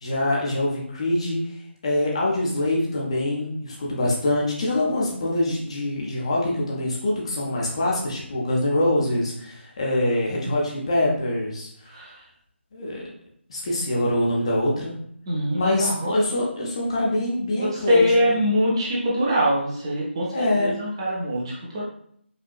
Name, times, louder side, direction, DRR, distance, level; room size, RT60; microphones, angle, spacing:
voice 1, 0.0-1.4 1.8-11.7 12.7-13.0 13.5-14.9 15.6-18.0 18.3-18.4 20.3-20.7, left 1 dB, 30° left, -3 dB, 0.7 m, -24 dB
voice 2, 11.9-12.2 15.3-16.2 17.6-21.8, equal, 25° right, -4 dB, 0.7 m, -23 dB
5.0 x 2.6 x 2.4 m, 0.65 s
figure-of-eight pair, 155°, 7 cm